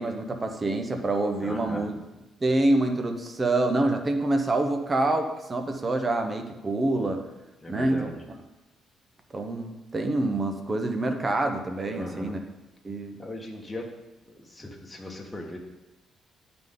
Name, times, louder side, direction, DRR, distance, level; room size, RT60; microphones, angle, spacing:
voice 1, 0.0-1.9 2.4-7.2 7.7-8.1 9.3-12.4 12.8-13.2, right 2 dB, 30° right, 5 dB, 1.0 m, -26 dB
voice 2, 1.4-1.9 7.6-8.2 11.9-12.4 13.2-13.8 14.3-15.6, left 1 dB, 15° left, 0 dB, 1.5 m, -39 dB
11.0 x 4.0 x 3.8 m, 1.0 s
cardioid pair, 90°, 0 cm